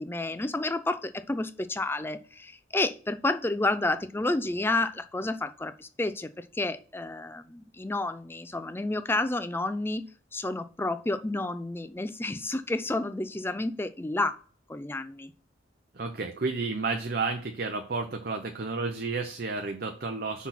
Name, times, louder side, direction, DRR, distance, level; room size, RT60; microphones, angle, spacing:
voice 1, 0.0-10.0 10.3-14.4 14.7-15.3, left 2 dB, 10° left, 11 dB, 0.4 m, -30 dB
voice 2, 15.9-20.5, right 3 dB, 50° right, 5 dB, 0.7 m, -31 dB
6.1 x 4.1 x 5.8 m, 0.44 s
head